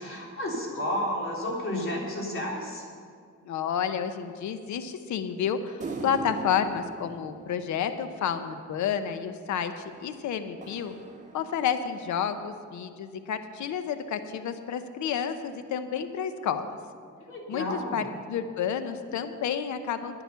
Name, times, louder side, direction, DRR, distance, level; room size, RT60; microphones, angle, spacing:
voice 1, 0.0-2.9 17.3-18.0, left 1 dB, 45° left, -2 dB, 3.5 m, -31 dB
voice 2, 3.5-10.9 11.3-16.7 17.5-18.0 18.3-20.2, left 8 dB, 70° left, 10 dB, 0.9 m, -30 dB
sound 1, 5.8-8.5 9.9-12.0, right 3 dB, 25° right, 2.1 m, -41 dB
11.0 x 10.0 x 6.9 m, 2.2 s
cardioid pair, 90°, 30 cm